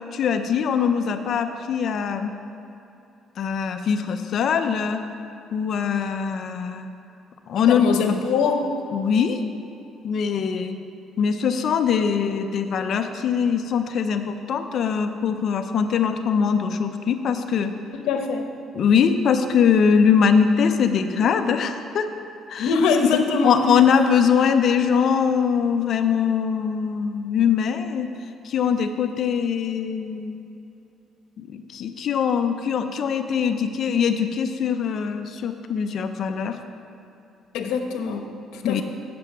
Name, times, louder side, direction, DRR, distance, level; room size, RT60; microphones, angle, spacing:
voice 1, 0.1-2.3 3.4-5.0 5.5-6.9 7.5-8.2 8.9-9.4 10.0-10.8 11.2-17.7 18.7-22.1 22.5-22.7 23.0-28.1 28.4-30.5 31.4-36.6 38.6-38.8, left 7 dB, 55° left, 7 dB, 0.6 m, -22 dB
voice 2, 7.7-8.7 18.0-18.4 22.6-23.7 37.5-38.8, left 5 dB, 85° left, 4 dB, 0.9 m, -23 dB
7.7 x 6.8 x 7.2 m, 2.8 s
cardioid pair, 125°, 0 cm